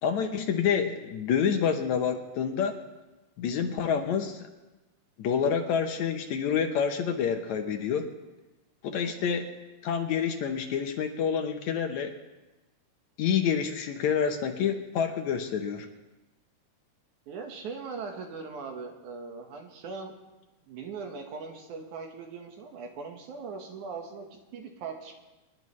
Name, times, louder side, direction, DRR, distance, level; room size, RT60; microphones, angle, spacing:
voice 1, 0.0-2.8 3.4-4.5 5.2-8.1 8.8-9.5 9.8-12.2 13.2-15.9, left 7 dB, 70° left, 5 dB, 2.0 m, -28 dB
voice 2, 9.0-9.4 17.3-20.1 20.7-25.1, right 5 dB, 70° right, 3 dB, 2.7 m, -40 dB
27.0 x 10.5 x 3.2 m, 1.1 s
omnidirectional pair, 3.7 m